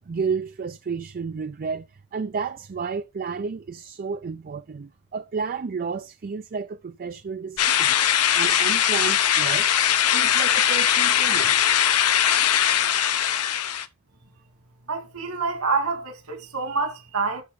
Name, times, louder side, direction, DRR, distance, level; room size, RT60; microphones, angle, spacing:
voice 1, 0.1-7.9 8.3-9.8 10.1-11.6, right 5 dB, 40° right, 0.4 m, -31 dB
sound 1, 7.6-13.9, left 10 dB, 85° left, 1.0 m, -20 dB
voice 2, 14.9-17.4, right 4 dB, 70° right, 2.6 m, -27 dB
12.5 x 4.3 x 5.2 m
head